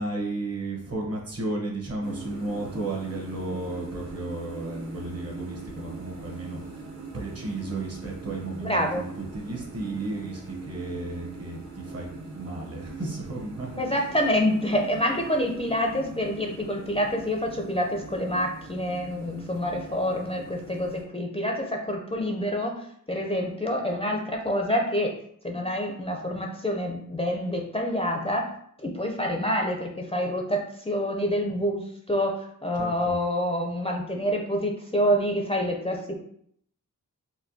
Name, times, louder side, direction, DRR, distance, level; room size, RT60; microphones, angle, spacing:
voice 1, 0.0-6.8 7.1-12.1 12.3-14.1 32.7-33.2, right 2 dB, 45° right, -1 dB, 1.0 m, -34 dB
sound 1, 2.0-21.0, right 3 dB, 90° right, 0.8 m, -41 dB
voice 2, 8.6-9.1 13.8-25.1 25.4-28.5 28.8-36.2, equal, 15° left, 1 dB, 0.4 m, -27 dB
4.2 x 2.2 x 2.7 m, 0.67 s
wide cardioid pair, 95°, 34 cm